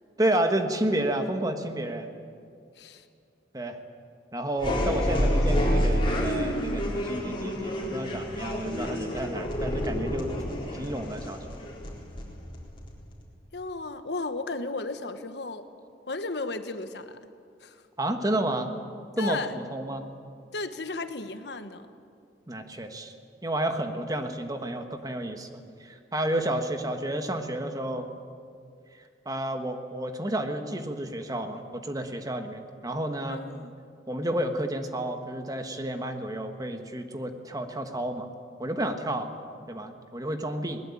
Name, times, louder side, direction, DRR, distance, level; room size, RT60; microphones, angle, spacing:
voice 1, 0.2-2.1 3.5-3.8 4.3-10.3 10.7-11.6 18.0-18.7 19.2-20.1 22.5-23.1 23.4-28.1 29.2-33.4 34.1-38.3 38.6-39.3 39.7-40.8, right 1 dB, 20° right, 6 dB, 1.5 m, -31 dB
voice 2, 2.7-3.1 13.5-15.6 16.1-17.2 17.6-17.8 19.2-19.5 20.5-21.9 33.3-33.7, left 3 dB, 75° left, 9 dB, 1.3 m, -34 dB
sound 1, 4.6-13.2, equal, 30° left, 4.0 m, -28 dB
21.0 x 19.5 x 8.6 m, 2.4 s
head